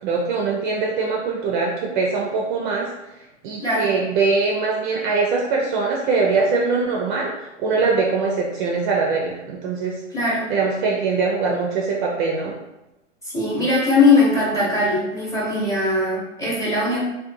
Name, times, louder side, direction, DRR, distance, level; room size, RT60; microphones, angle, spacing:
voice 1, 0.0-2.9 3.4-7.3 7.6-10.0 10.5-12.5, right 4 dB, 40° right, -1 dB, 0.4 m, -22 dB
voice 2, 3.6-3.9 10.1-10.5 13.2-17.0, left 2 dB, 10° left, -7 dB, 0.9 m, -20 dB
2.5 x 2.3 x 2.6 m, 0.97 s
hypercardioid pair, 120°, 37 cm